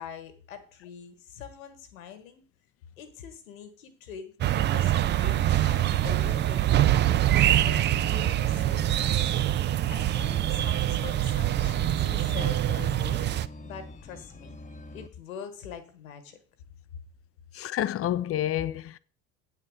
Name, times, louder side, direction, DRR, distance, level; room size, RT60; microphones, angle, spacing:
voice 1, 0.0-2.5 3.0-9.4 9.9-14.5 14.9-16.4, left 7 dB, 75° left, 1.6 m, -43 dB
sound 1, 4.4-13.5, right 13 dB, 30° right, 0.4 m, -24 dB
sound 2, 5.3-15.1, left 2 dB, 20° left, 0.9 m, -44 dB
voice 2, 17.5-19.0, left 12 dB, 35° left, 0.6 m, -29 dB
8.6 x 4.4 x 6.5 m
figure-of-eight pair, 60°, 40 cm